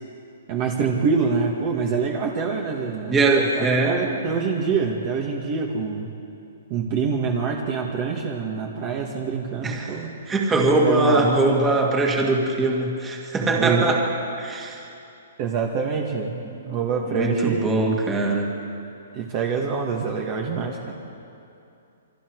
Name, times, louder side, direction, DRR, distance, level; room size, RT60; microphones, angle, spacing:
voice 1, 0.5-3.2 3.6-6.1 6.7-10.1 10.8-11.6 13.6-13.9 15.4-18.0 19.1-20.9, right 5 dB, 30° right, 0 dB, 1.9 m, -25 dB
voice 2, 3.1-4.0 9.6-10.0 10.3-14.0 14.4-14.8 17.1-18.5, right 2 dB, 10° right, 0 dB, 2.3 m, -21 dB
28.5 x 24.5 x 4.8 m, 2.7 s
hypercardioid pair, 170°, 0 cm